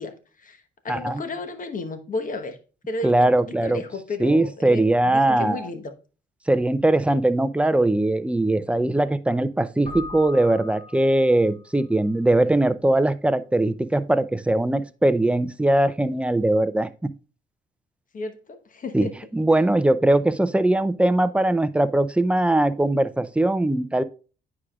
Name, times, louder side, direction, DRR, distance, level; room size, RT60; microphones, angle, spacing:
voice 1, 0.0-2.6 2.9-5.8 18.1-19.1, left 3 dB, 40° left, 1.1 m, -33 dB
voice 2, 0.9-1.2 3.0-3.8 4.2-5.7 6.5-17.1 18.9-19.1 19.3-24.0, right 1 dB, 5° right, 0.4 m, -21 dB
Keyboard (musical), 9.8-11.7, left 3 dB, 25° left, 4.0 m, -39 dB
9.7 x 4.8 x 2.4 m
cardioid pair, 90°, 20 cm